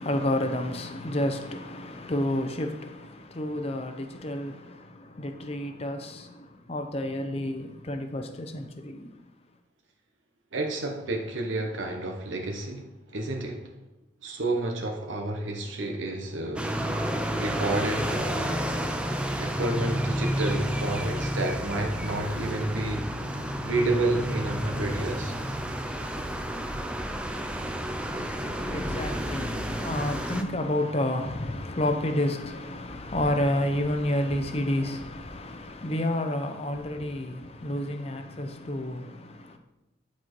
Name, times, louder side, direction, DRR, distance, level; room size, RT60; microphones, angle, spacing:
voice 1, 0.0-9.2 28.0-39.6, left 1 dB, 30° left, 0.7 m, -30 dB
voice 2, 10.5-13.7 14.2-16.8 17.4-18.6 19.4-23.1 23.6-25.3, right 2 dB, 75° right, 1.0 m, -30 dB
sound 1, 16.6-30.4, equal, 5° right, 0.4 m, -30 dB
10.0 x 4.3 x 4.6 m
head